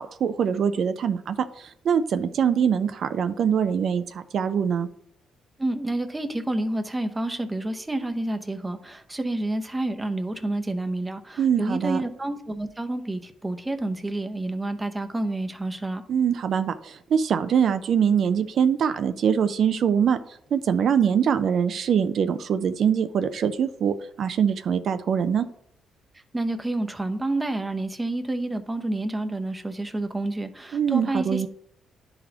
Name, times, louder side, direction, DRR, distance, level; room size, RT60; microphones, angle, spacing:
voice 1, 0.0-4.9 11.4-12.0 16.1-20.2 20.5-25.5 30.7-31.5, right 7 dB, 60° right, 11 dB, 0.4 m, -23 dB
voice 2, 5.6-16.0 26.3-31.5, right 2 dB, 15° right, 7 dB, 0.7 m, -29 dB
10.5 x 4.0 x 2.9 m, 0.69 s
cardioid pair, 90°, 0 cm